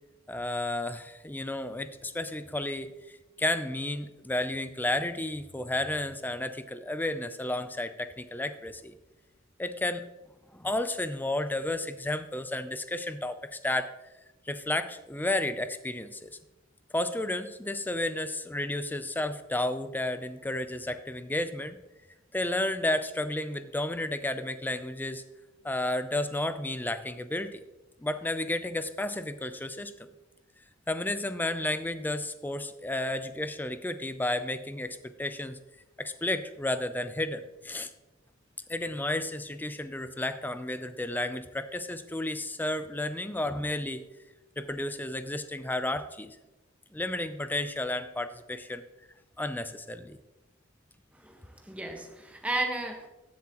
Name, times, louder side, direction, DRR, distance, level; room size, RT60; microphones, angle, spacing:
voice 1, 0.3-8.9 9.6-10.0 10.5-13.9 14.5-16.4 16.9-21.8 22.3-25.2 25.6-27.6 28.0-30.1 30.9-35.6 36.0-37.9 38.7-44.0 44.6-46.4 46.9-48.8 49.4-50.2, left 1 dB, 10° left, 11 dB, 0.5 m, -32 dB
voice 2, 51.1-53.1, right 2 dB, 5° right, 2 dB, 1.3 m, -34 dB
15.0 x 7.2 x 3.0 m, 1.0 s
head